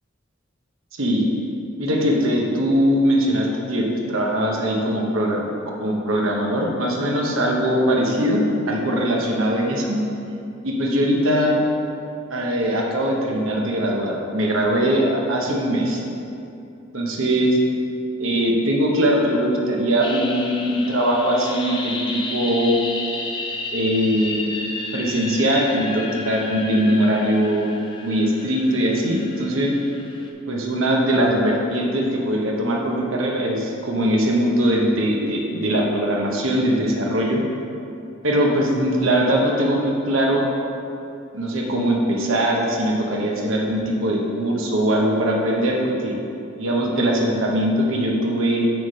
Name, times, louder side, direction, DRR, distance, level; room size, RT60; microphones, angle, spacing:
voice 1, 1.0-1.3 1.8-5.5 5.8-10.0 10.6-11.6 12.3-16.0 16.9-17.6 18.2-22.8 23.7-24.5 24.9-27.7 28.0-29.8 30.5-37.4 38.2-40.5 41.3-46.2 46.6-48.7, equal, 70° right, 0 dB, 1.0 m, -21 dB
sound 1, 20.0-30.3, left 2 dB, 25° left, 0.5 m, -33 dB
7.9 x 3.3 x 5.5 m, 2.7 s
head